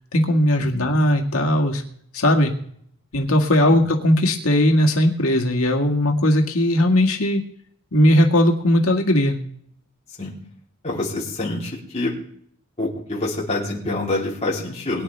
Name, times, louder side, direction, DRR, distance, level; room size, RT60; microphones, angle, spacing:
voice 1, 0.1-1.8 2.1-2.5 3.1-7.4 7.9-9.4, left 1 dB, 90° left, 2 dB, 1.8 m, -18 dB
voice 2, 10.8-12.2 12.8-15.0, left 2 dB, 30° left, -4 dB, 3.3 m, -26 dB
22.5 x 10.0 x 3.4 m, 0.64 s
head